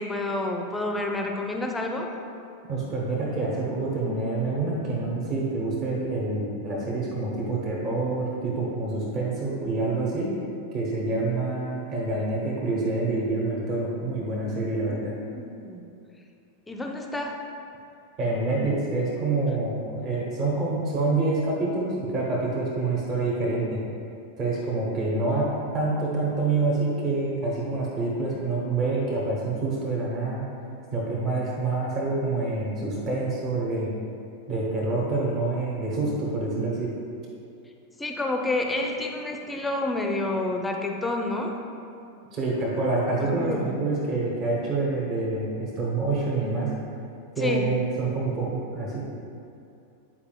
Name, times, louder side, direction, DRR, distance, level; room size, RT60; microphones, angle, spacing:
voice 1, 0.0-2.1 14.9-15.0 15.3-15.9 16.7-17.4 38.0-41.6 43.4-43.7 47.4-47.7, left 2 dB, 10° left, 2 dB, 0.6 m, -29 dB
voice 2, 2.6-10.3 10.7-15.1 18.2-23.8 24.4-30.4 30.9-33.9 34.5-36.9 42.3-46.7 47.3-49.0, right 3 dB, 35° right, -4 dB, 1.1 m, -27 dB
8.6 x 4.9 x 2.3 m, 2.5 s
figure-of-eight pair, 90°, 0 cm